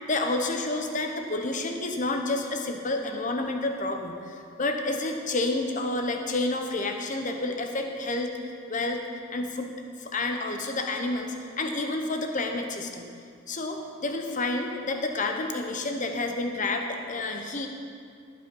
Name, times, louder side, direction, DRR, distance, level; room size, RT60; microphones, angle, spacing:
voice 1, 0.1-9.0 9.3-9.7 10.0-13.0 13.5-17.7, left 2 dB, 35° left, 4 dB, 0.9 m, -29 dB
13.0 x 8.4 x 5.4 m, 2.3 s
head